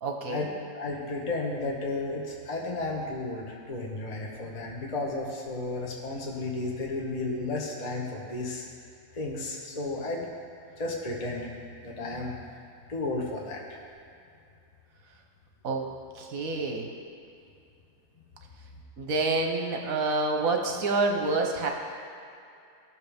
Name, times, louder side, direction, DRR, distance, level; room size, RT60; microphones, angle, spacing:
voice 1, 0.0-0.5 15.6-15.9 16.1-16.9 19.0-21.7, right 3 dB, 55° right, 2 dB, 1.2 m, -28 dB
voice 2, 0.7-8.6 9.1-10.2 10.8-11.5 11.8-12.4 12.9-13.6, left 2 dB, 25° left, -2 dB, 1.0 m, -33 dB
17.0 x 6.6 x 3.5 m, 2.5 s
omnidirectional pair, 2.1 m